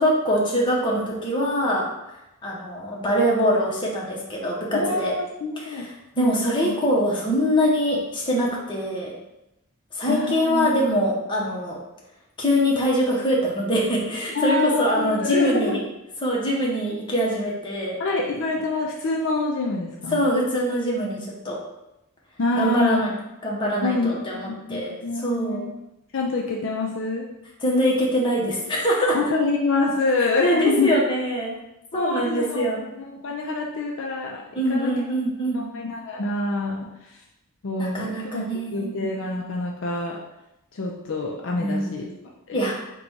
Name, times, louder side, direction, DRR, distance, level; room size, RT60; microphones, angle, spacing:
voice 1, 0.0-1.9 2.4-5.1 5.6-5.9 6.2-9.2 9.9-11.8 12.4-15.8 16.2-18.0 20.1-21.6 22.6-23.1 23.4-25.7 27.6-29.2 30.4-31.6 31.9-32.8 34.5-35.7 37.8-38.9 41.6-42.0 42.5-42.8, equal, 20° left, -3 dB, 0.8 m, -23 dB
voice 2, 4.7-5.9 6.2-6.3 6.5-6.8 10.1-10.7 14.3-15.8 18.0-20.2 22.4-23.0 23.8-25.7 26.1-27.3 29.1-30.9 31.9-32.7 33.0-34.4 34.7-34.9 35.5-37.2 37.6-38.5 38.7-40.2 40.7-42.1 42.5-42.6, left 2 dB, 55° left, -1 dB, 0.4 m, -26 dB
3.9 x 2.2 x 4.5 m, 0.91 s
head